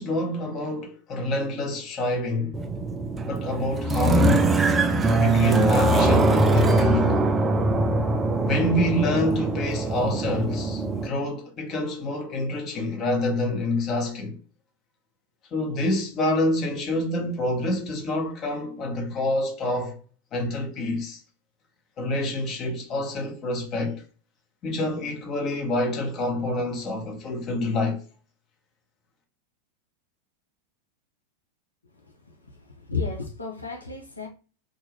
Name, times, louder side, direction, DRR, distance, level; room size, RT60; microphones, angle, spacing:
voice 1, 0.0-2.6 3.2-4.5 5.2-7.2 8.4-14.4 15.5-20.0 20.3-21.2 22.0-24.0 24.6-28.0, left 1 dB, 30° left, 0.8 m, -27 dB
sound 1, 2.5-11.1, right 2 dB, 15° right, 0.3 m, -22 dB
voice 2, 32.3-34.3, left 4 dB, 80° left, 0.5 m, -33 dB
2.4 x 2.2 x 3.2 m
figure-of-eight pair, 90°, 0 cm